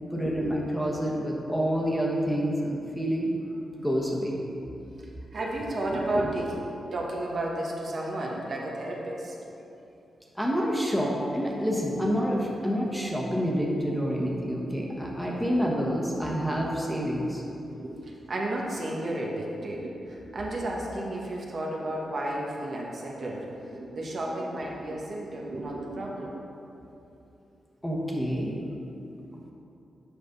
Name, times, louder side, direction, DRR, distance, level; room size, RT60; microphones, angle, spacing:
voice 1, 0.1-3.3 3.8-4.4 10.3-17.4 27.8-28.6, equal, 5° left, -3 dB, 1.2 m, -28 dB
voice 2, 5.3-9.3 16.5-16.9 17.7-26.4, right 1 dB, 55° right, -3 dB, 1.2 m, -32 dB
7.9 x 5.2 x 4.0 m, 2.8 s
cardioid pair, 70°, 0 cm